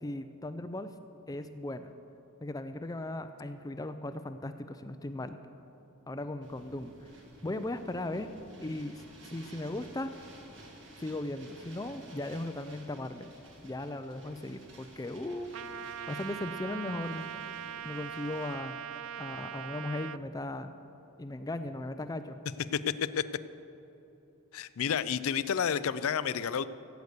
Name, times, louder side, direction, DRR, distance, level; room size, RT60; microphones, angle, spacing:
voice 1, 0.0-0.9 1.3-1.9 2.4-5.4 6.1-6.9 7.4-8.3 8.6-10.1 11.0-13.3 13.6-15.5 15.8-17.3 17.8-18.8 19.2-20.7 21.2-22.4, left 1 dB, 15° left, 10 dB, 0.4 m, -37 dB
sound 1, 6.4-18.6, right 1 dB, 55° right, 2.2 m, -53 dB
Trumpet, 15.5-20.2, right 9 dB, 75° right, 0.4 m, -41 dB
voice 2, 22.7-23.2 24.5-26.7, left 7 dB, 80° left, 15 dB, 0.5 m, -30 dB
16.0 x 8.1 x 6.6 m, 3.0 s
head